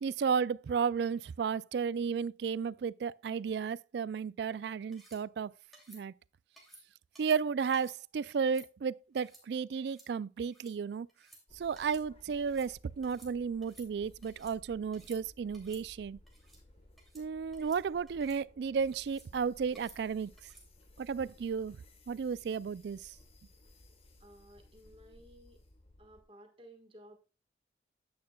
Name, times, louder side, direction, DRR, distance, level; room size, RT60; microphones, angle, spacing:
voice 1, 0.0-5.5 5.9-6.1 7.2-11.1 11.6-16.2 17.1-20.3 21.0-21.8 22.1-23.1, right 6 dB, 70° right, 0.3 m, -33 dB
sound 1, 4.9-5.2 5.7-6.0 6.6-6.8 7.2-7.4 7.7-8.0 8.3-8.7 9.2-9.4 9.8-10.1 10.4-10.7 11.1-11.4 11.8-12.0 12.3-12.7 13.0-13.3 13.6-14.6 14.9-15.2 15.5-15.8 16.3-16.6 17.0-17.2 17.5-17.8 18.1-18.4 18.9-19.3 19.8-20.0 20.4-20.7, right 1 dB, ahead, 2.6 m, -57 dB
sound 2, 11.5-26.2, left 1 dB, 35° left, 1.3 m, -59 dB
voice 2, 24.2-25.6 26.0-27.2, right 1 dB, 30° right, 1.5 m, -56 dB
10.5 x 8.7 x 2.3 m
head